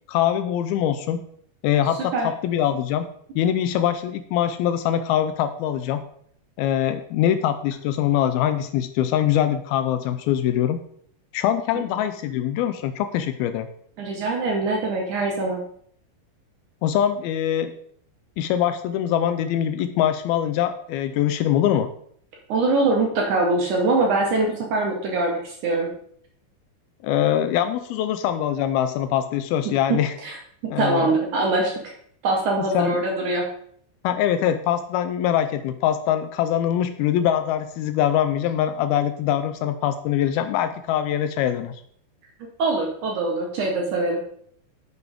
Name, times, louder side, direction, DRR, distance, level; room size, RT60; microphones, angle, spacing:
voice 1, 0.1-1.3 1.6-3.1 3.4-6.0 6.6-10.8 11.3-13.7 16.8-17.7 18.4-21.9 27.0-30.1 30.7-31.2 32.7-33.0 34.0-41.8, left 10 dB, 85° left, 10 dB, 2.2 m, -23 dB
voice 2, 14.0-15.6 22.5-25.9 30.2-30.4 30.8-31.8 32.2-33.5 42.6-44.2, right 2 dB, 65° right, 0 dB, 2.1 m, -23 dB
9.7 x 7.0 x 3.6 m, 0.64 s
omnidirectional pair, 4.8 m